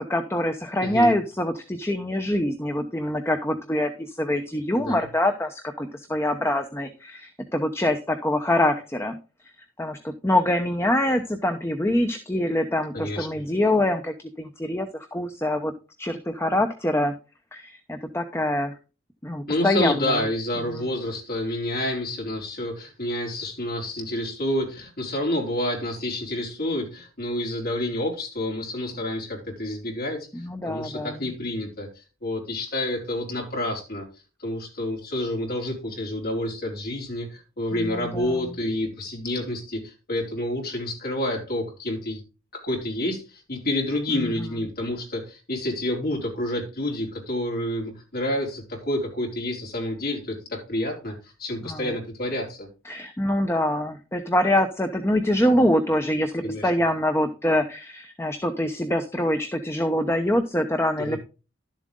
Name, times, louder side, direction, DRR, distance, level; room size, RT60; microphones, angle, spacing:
voice 1, 0.0-9.1 9.8-15.7 16.0-17.1 17.5-18.8 19.2-20.2 20.7-20.9 30.3-31.2 37.7-38.4 44.1-44.2 51.6-51.9 52.8-61.2, left 1 dB, 10° left, 6 dB, 0.8 m, -25 dB
voice 2, 0.8-1.1 4.8-5.1 12.9-13.4 19.5-34.1 34.4-42.2 42.5-52.7 56.4-56.7 61.0-61.2, left 1 dB, 45° left, 1 dB, 4.4 m, -29 dB
12.0 x 7.4 x 3.8 m, 0.31 s
head